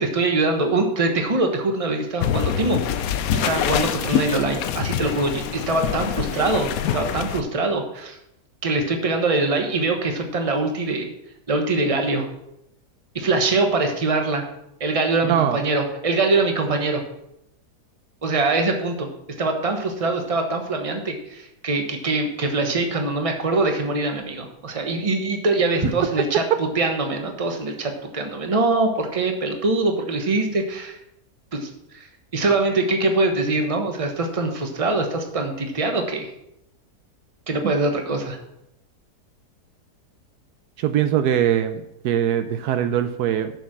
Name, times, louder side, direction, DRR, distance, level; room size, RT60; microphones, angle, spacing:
voice 1, 0.0-3.0 3.3-8.2 8.6-11.1 11.5-12.3 13.1-14.4 14.8-17.0 18.2-19.1 19.4-31.0 31.5-32.1 32.3-36.3 37.5-38.4, right 3 dB, 25° right, 4 dB, 1.1 m, -23 dB
sound 1, 2.2-7.4, left 9 dB, 70° left, 1.0 m, -25 dB
voice 2, 40.8-43.5, right 10 dB, 80° right, 9 dB, 1.1 m, -22 dB
7.2 x 6.7 x 6.0 m, 0.82 s
omnidirectional pair, 1.7 m